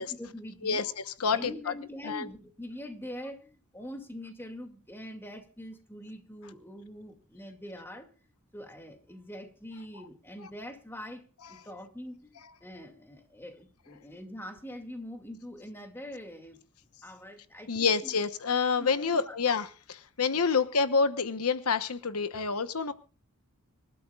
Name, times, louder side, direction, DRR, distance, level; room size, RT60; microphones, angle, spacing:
voice 1, 0.0-0.8 1.3-8.1 8.5-16.6 17.0-18.1 18.8-19.4 20.3-20.5, left 1 dB, 10° left, 2.3 m, -44 dB
voice 2, 0.6-1.7 2.0-2.3 17.7-22.9, left 5 dB, 80° left, 1.0 m, -28 dB
26.0 x 13.0 x 2.4 m
head